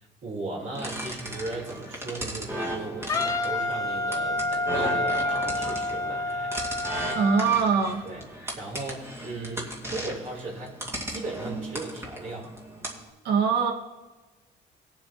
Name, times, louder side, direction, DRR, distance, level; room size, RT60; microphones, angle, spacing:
voice 1, 0.0-6.5 8.0-8.2 8.6-10.8 11.1-12.5, right 2 dB, 50° right, -2 dB, 3.7 m, -37 dB
sound 1, 0.7-13.1, right 1 dB, 15° right, 2.2 m, -36 dB
Wind instrument woodwind instrument, 3.1-7.5, left 2 dB, 20° left, 0.7 m, -28 dB
voice 2, 7.2-8.0 13.2-13.7, right 5 dB, 80° right, 2 dB, 1.8 m, -22 dB
20.0 x 7.2 x 3.0 m, 1.2 s
cardioid pair, 110°, 17 cm